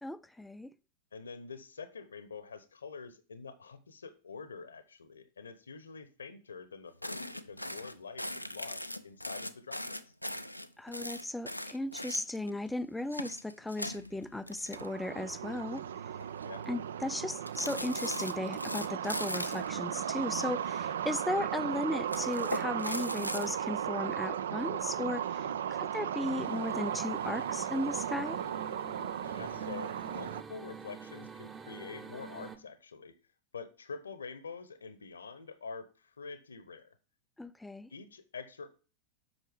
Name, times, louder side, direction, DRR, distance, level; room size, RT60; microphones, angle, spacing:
voice 1, 0.0-0.7 10.8-16.1 16.7-28.4 37.4-37.9, left 1 dB, 5° left, 0.3 m, -36 dB
voice 2, 1.1-10.0 16.4-16.7 25.4-25.8 29.2-33.2 33.5-37.0 37.9-38.7, left 5 dB, 70° left, 1.0 m, -46 dB
sound 1, 7.0-12.6 13.0-15.3 15.6-15.8 16.2-16.7 17.5-19.7 20.4-21.2 22.0-23.5, left 1 dB, 90° left, 0.5 m, -40 dB
sound 2, 14.7-30.4, right 9 dB, 65° right, 0.4 m, -36 dB
sound 3, 26.3-32.6, right 6 dB, 20° right, 1.0 m, -47 dB
8.1 x 6.1 x 3.5 m
figure-of-eight pair, 90°, 0 cm